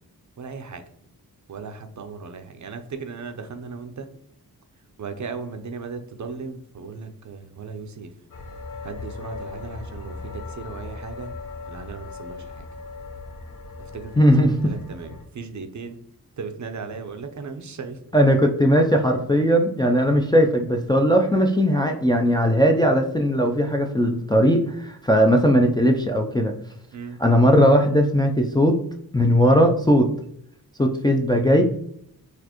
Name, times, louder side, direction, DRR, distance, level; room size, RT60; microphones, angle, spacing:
voice 1, 0.4-0.8 1.5-4.1 5.0-8.1 8.8-11.3 11.7-12.7 13.9-16.0 16.4-18.0 26.9-27.2, right 5 dB, 50° right, 7 dB, 0.5 m, -36 dB
sound 1, 8.3-15.2, left 3 dB, 55° left, 0.8 m, -38 dB
voice 2, 14.2-14.7 18.1-26.5 27.2-28.8 29.1-30.1 30.8-31.6, equal, 10° left, 2 dB, 0.3 m, -18 dB
4.2 x 2.5 x 2.9 m, 0.68 s
wide cardioid pair, 75°, 38 cm